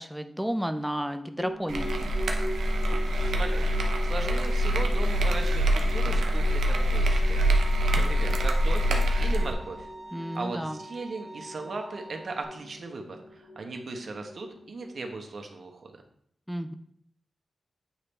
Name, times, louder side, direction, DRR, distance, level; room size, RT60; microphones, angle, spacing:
voice 1, 0.0-2.1 10.1-10.8 16.5-16.7, equal, 5° right, 7 dB, 0.4 m, -32 dB
sound 1, 1.4-15.2, equal, 60° left, 0.9 m, -42 dB
sound 2, 1.7-9.5, equal, 90° right, 0.7 m, -24 dB
voice 2, 3.2-3.7 4.0-9.9 10.3-16.0, right 3 dB, 65° right, 3 dB, 1.0 m, -38 dB
Bowed string instrument, 7.4-12.4, right 1 dB, 35° right, 1.4 m, -46 dB
8.7 x 3.2 x 4.3 m, 0.69 s
cardioid pair, 55°, 0 cm